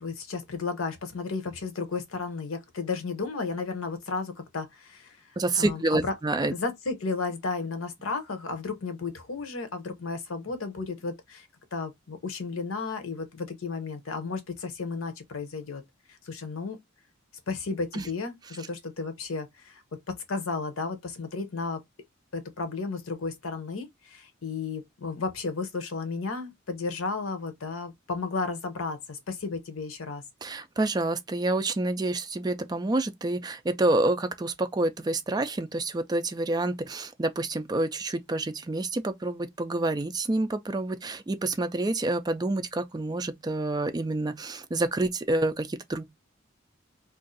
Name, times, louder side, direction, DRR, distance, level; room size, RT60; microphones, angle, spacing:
voice 1, 0.0-5.2 5.6-6.1 6.5-15.8 16.1-16.8 17.5-21.8 22.3-30.2, left 4 dB, 85° left, 0.8 m, -33 dB
voice 2, 5.4-6.5 17.9-18.1 30.4-46.0, right 2 dB, 20° right, 0.4 m, -28 dB
2.6 x 2.4 x 3.8 m
head